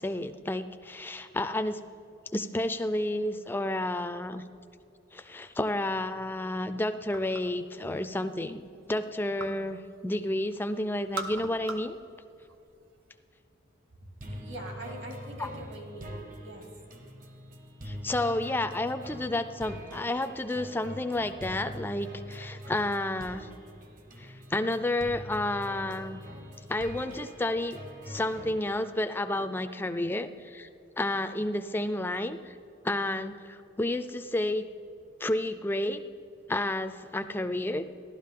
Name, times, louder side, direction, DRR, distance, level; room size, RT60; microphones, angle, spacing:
voice 1, 0.0-1.8 2.3-4.4 5.1-12.0 15.4-15.5 17.8-23.5 24.2-26.2 26.7-27.8 28.1-30.7 31.0-32.5 32.8-34.6 35.2-36.0 36.5-37.8, left 1 dB, 10° left, 10 dB, 0.3 m, -31 dB
sound 1, 7.1-7.6 8.0-9.7 10.0-10.6 10.9-12.0 12.3-13.1, right 3 dB, 90° right, 0.8 m, -40 dB
sound 2, 14.2-28.6, equal, 45° right, 1.0 m, -44 dB
voice 2, 14.3-16.7, right 1 dB, 65° right, 1 dB, 2.3 m, -43 dB
14.0 x 12.0 x 3.7 m, 2.7 s
head